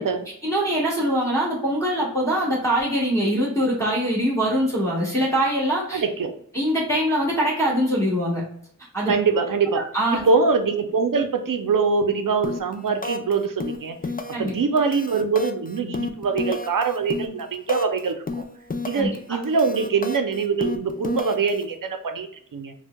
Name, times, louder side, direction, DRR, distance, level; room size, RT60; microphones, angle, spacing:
voice 1, 0.4-6.0 6.5-8.4 8.9-9.1 9.7-10.2 14.3-14.5 18.9-19.1, equal, 10° left, -7 dB, 1.3 m, -23 dB
voice 2, 5.9-6.3 9.1-9.8 10.1-14.0 14.4-18.4 18.8-22.7, right 4 dB, 70° right, 7 dB, 0.5 m, -23 dB
sound 1, 12.4-12.7 13.0-13.3 13.6-14.5 14.8-18.0 18.3-19.2 19.4-21.6, left 3 dB, 25° left, 0.4 m, -30 dB
4.4 x 2.2 x 2.2 m, 0.67 s
wide cardioid pair, 45°, 34 cm